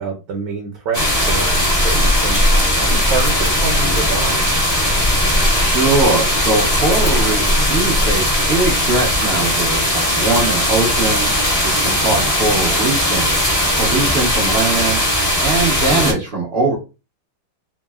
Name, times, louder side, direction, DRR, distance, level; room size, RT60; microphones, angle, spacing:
voice 1, 0.0-4.5, right 4 dB, 70° right, 1 dB, 1.2 m, -27 dB
sound 1, 0.9-16.1, left 1 dB, 45° left, 0.4 m, -17 dB
voice 2, 5.5-13.3 13.8-15.0 15.4-16.8, right 3 dB, 85° right, -4 dB, 0.5 m, -21 dB
3.5 x 2.0 x 2.2 m, 0.30 s
omnidirectional pair, 2.3 m